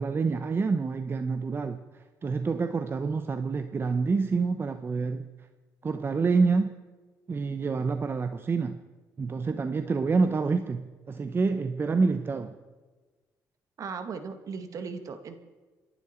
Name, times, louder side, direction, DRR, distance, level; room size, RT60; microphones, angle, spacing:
voice 1, 0.0-5.3 5.8-6.7 7.3-8.8 9.2-12.6, right 4 dB, 35° right, 9 dB, 0.9 m, -27 dB
voice 2, 13.8-15.3, right 5 dB, 55° right, 8 dB, 2.0 m, -37 dB
28.0 x 11.5 x 4.5 m, 1.3 s
supercardioid pair, 80°, 7 cm